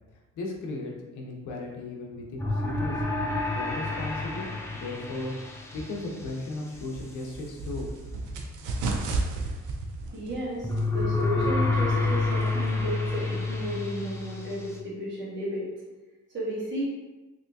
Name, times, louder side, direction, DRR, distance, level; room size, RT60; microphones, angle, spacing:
voice 1, 0.4-3.0 3.5-4.5 4.7-5.3 5.7-7.9, left 2 dB, 90° left, -1 dB, 0.8 m, -36 dB
sound 1, 2.4-6.1 10.6-14.8, left 3 dB, 10° left, 0.5 m, -28 dB
sound 2, 6.7-12.9, right 3 dB, 80° right, 0.6 m, -34 dB
voice 2, 10.1-15.7 16.3-16.8, right 1 dB, 40° right, -8 dB, 1.3 m, -33 dB
3.4 x 2.8 x 2.7 m, 1.2 s
cardioid pair, 90°, 30 cm